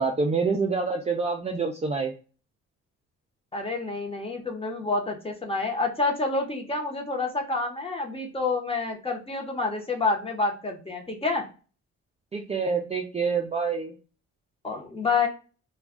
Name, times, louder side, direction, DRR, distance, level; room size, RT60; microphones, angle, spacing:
voice 1, 0.0-2.1 12.3-13.9, right 4 dB, 20° right, 2 dB, 0.4 m, -26 dB
voice 2, 3.5-11.5 14.6-15.3, left 3 dB, 20° left, 2 dB, 0.8 m, -28 dB
2.3 x 2.2 x 3.5 m, 0.35 s
cardioid pair, 90°, 30 cm